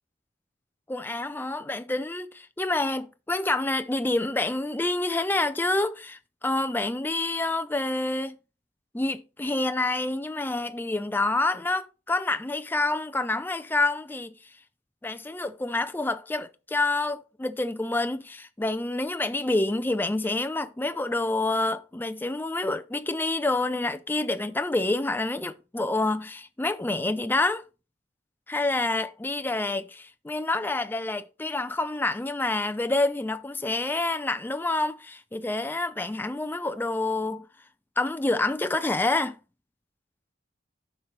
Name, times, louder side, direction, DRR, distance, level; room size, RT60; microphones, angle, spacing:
voice 1, 0.9-8.4 8.9-14.3 15.0-27.6 28.5-37.5 38.0-39.4, left 2 dB, 10° left, 0.4 m, -28 dB
9.4 x 6.0 x 3.2 m
head